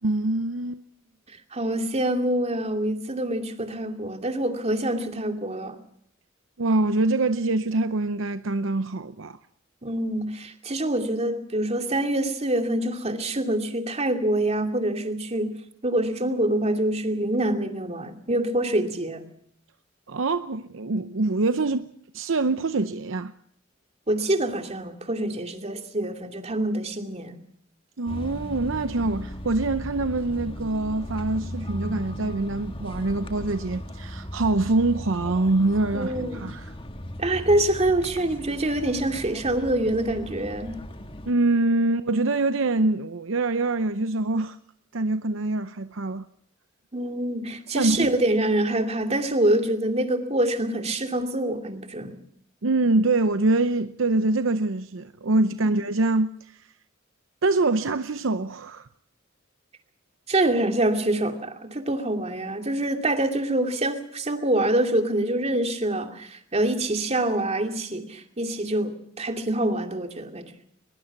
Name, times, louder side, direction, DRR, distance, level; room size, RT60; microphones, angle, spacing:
voice 1, 0.0-0.8 6.6-9.4 20.1-23.3 28.0-36.7 41.3-44.6 44.9-46.3 47.7-48.1 52.6-56.7 57.4-58.9, right 2 dB, 70° right, 0.7 m, -24 dB
voice 2, 1.5-5.8 9.8-15.6 15.8-19.3 24.1-27.4 35.9-36.4 37.2-40.8 46.9-52.2 60.3-70.5, right 1 dB, 30° right, 2.5 m, -25 dB
sound 1, 28.1-41.3, equal, 25° left, 1.6 m, -37 dB
22.0 x 21.5 x 6.0 m
head